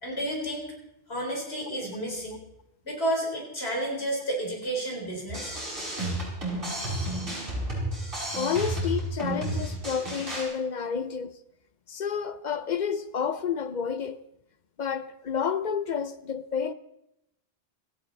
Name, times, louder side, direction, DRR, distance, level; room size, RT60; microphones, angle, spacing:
voice 1, 0.0-0.7 1.1-2.4 2.8-5.6, right 1 dB, 65° left, 4.1 m, -31 dB
sound 1, 5.3-10.4, right 1 dB, 55° right, 6.1 m, -32 dB
voice 2, 8.4-11.4 11.9-14.2 14.8-16.7, left 7 dB, 50° left, 0.7 m, -30 dB
18.0 x 14.5 x 4.0 m
omnidirectional pair, 1.2 m